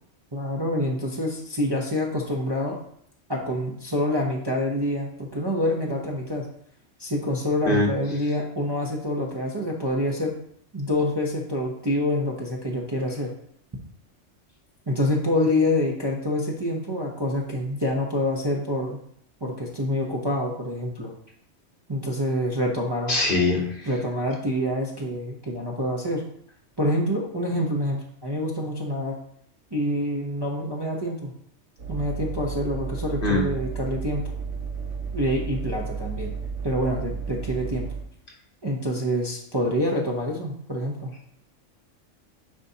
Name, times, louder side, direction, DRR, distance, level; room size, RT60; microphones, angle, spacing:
voice 1, 0.3-2.8 3.3-6.5 7.0-10.3 10.7-13.3 14.9-19.0 19.4-21.1 21.9-23.2 23.9-26.2 26.8-29.2 29.7-31.3 31.9-34.3 35.1-36.3 36.6-37.9 38.6-41.1, left 1 dB, 25° right, -3 dB, 0.7 m, -26 dB
voice 2, 23.1-23.9 33.2-33.5, left 2 dB, 45° left, -1 dB, 1.3 m, -22 dB
sound 1, 31.8-38.0, right 6 dB, 80° right, 1.6 m, -32 dB
9.6 x 4.1 x 2.8 m, 0.67 s
omnidirectional pair, 1.2 m